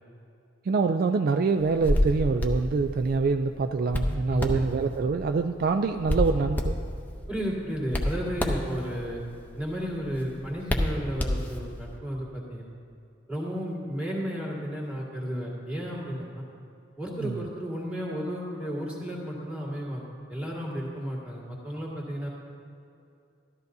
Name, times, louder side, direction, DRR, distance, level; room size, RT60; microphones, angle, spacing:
voice 1, 0.7-6.8 17.2-17.4, right 4 dB, 50° right, 7 dB, 0.3 m, -25 dB
Hands, 1.6-11.9, left 1 dB, 10° left, 0.7 m, -31 dB
voice 2, 4.3-4.6 7.3-9.2 9.6-12.7 13.3-16.5 17.0-20.0 20.3-22.3, equal, 5° right, -5 dB, 1.9 m, -33 dB
13.0 x 13.0 x 2.7 m, 2.6 s
head